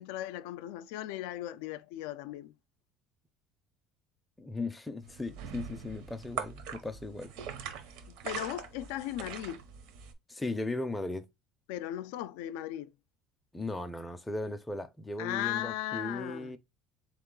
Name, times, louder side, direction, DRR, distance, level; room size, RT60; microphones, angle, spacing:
voice 1, 0.0-2.6 8.1-9.7 11.7-12.9 15.2-16.6, left 13 dB, 85° left, 0.3 m, -37 dB
voice 2, 4.4-7.3 10.3-11.3 13.5-16.6, left 2 dB, 5° left, 0.4 m, -37 dB
sound 1, 5.0-10.1, right 7 dB, 70° right, 0.7 m, -42 dB
3.8 x 2.9 x 3.7 m
cardioid pair, 160°, 0 cm